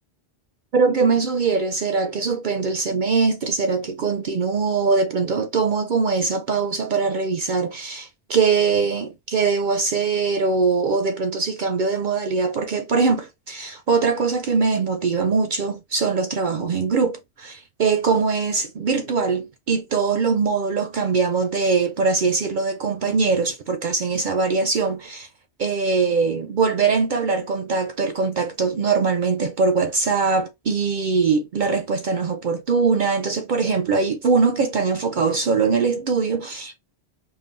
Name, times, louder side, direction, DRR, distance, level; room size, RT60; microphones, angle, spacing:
voice 1, 0.7-25.3 25.6-36.8, right 4 dB, 60° right, 0.6 m, -22 dB
5.5 x 2.2 x 2.5 m
omnidirectional pair, 1.2 m